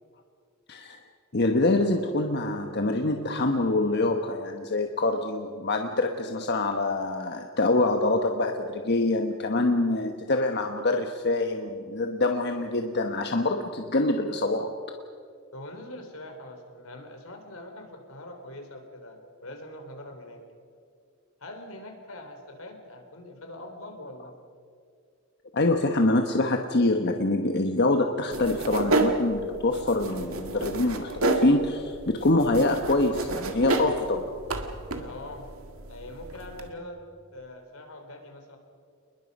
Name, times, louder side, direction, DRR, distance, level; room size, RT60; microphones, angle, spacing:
voice 1, 0.7-1.0 1.3-14.7 25.5-34.3, left 2 dB, 55° left, 5 dB, 1.1 m, -25 dB
voice 2, 15.5-20.4 21.4-24.3 34.9-35.5 35.9-37.0 37.3-38.6, left 1 dB, 85° left, 4 dB, 3.8 m, -43 dB
sound 1, 28.3-36.7, right 2 dB, 85° right, 2.0 m, -30 dB
28.5 x 21.0 x 5.4 m, 2.2 s
head